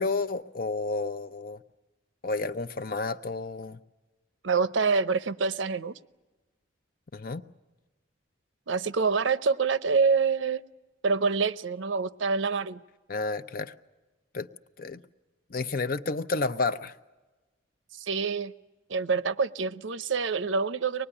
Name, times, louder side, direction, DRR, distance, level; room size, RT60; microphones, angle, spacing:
voice 1, 0.0-1.6 2.2-3.8 7.1-7.4 13.1-13.7 14.3-14.5 14.8-15.0 15.5-16.9, left 3 dB, 45° left, 0.7 m, -30 dB
voice 2, 4.4-5.9 8.7-10.6 11.0-12.8 17.9-18.5 18.9-21.1, right 5 dB, 75° right, 0.7 m, -26 dB
24.5 x 20.0 x 10.0 m
head